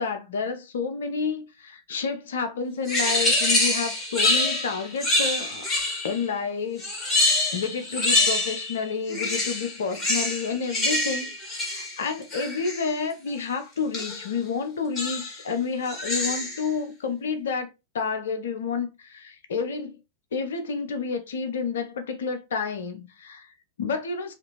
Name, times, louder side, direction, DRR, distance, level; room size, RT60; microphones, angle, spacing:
voice 1, 0.0-5.7 6.0-7.2 7.5-20.0 20.3-24.3, left 5 dB, 65° left, 0.7 m, -30 dB
sound 1, 2.9-6.2 6.8-8.8 9.1-12.9 13.9-14.3 15.0-15.4 15.9-16.7, left 2 dB, 20° left, 2.4 m, -25 dB
4.9 x 2.6 x 3.0 m
figure-of-eight pair, 90°, 0 cm